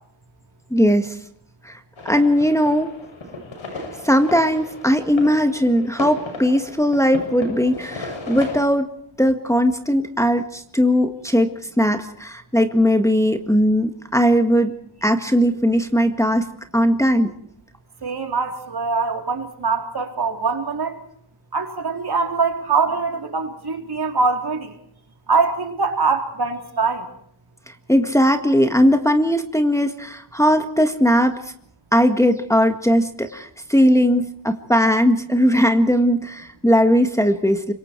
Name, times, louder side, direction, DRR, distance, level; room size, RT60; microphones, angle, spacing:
voice 1, 0.7-1.2 1.6-1.8 2.1-2.9 4.0-8.9 9.2-14.7 15.0-16.5 16.7-17.3 27.9-31.4 31.9-37.7, equal, 5° left, 6 dB, 1.8 m, -18 dB
sound 1, 2.0-8.6, left 2 dB, 80° left, 7.3 m, -35 dB
voice 2, 18.0-21.0 21.5-24.8 25.3-27.1, right 4 dB, 55° right, 5 dB, 3.8 m, -23 dB
26.0 x 24.0 x 4.6 m, 0.69 s
wide cardioid pair, 100°, 46 cm